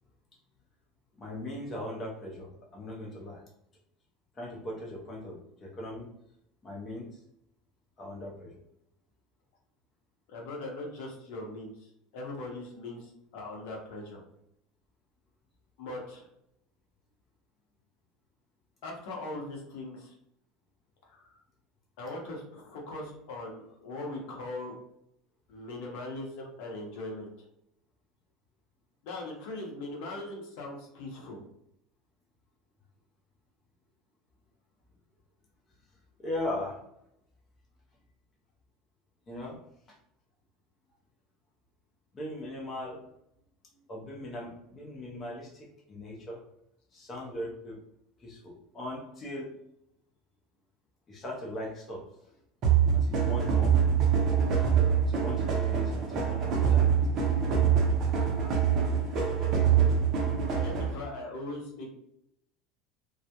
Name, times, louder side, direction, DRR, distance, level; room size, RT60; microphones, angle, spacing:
voice 1, 1.2-3.4 4.4-6.1 6.6-7.2 8.0-8.6 36.2-36.8 39.3-39.6 39.9-40.0 42.1-43.0 43.9-46.4 46.9-47.8 48.2-49.5 51.1-52.0 52.9-53.8 55.0-56.9, left 1 dB, 25° left, -2 dB, 0.5 m, -39 dB
voice 2, 10.3-11.9 12.1-14.2 15.8-16.3 18.8-20.1 21.1-21.4 22.0-24.8 25.5-27.3 29.0-31.4 60.5-61.9, left 2 dB, 70° left, 0 dB, 0.7 m, -40 dB
sound 1, 52.6-61.1, right 7 dB, 40° right, 0.6 m, -25 dB
2.2 x 2.0 x 2.8 m, 0.78 s
supercardioid pair, 140°, 0 cm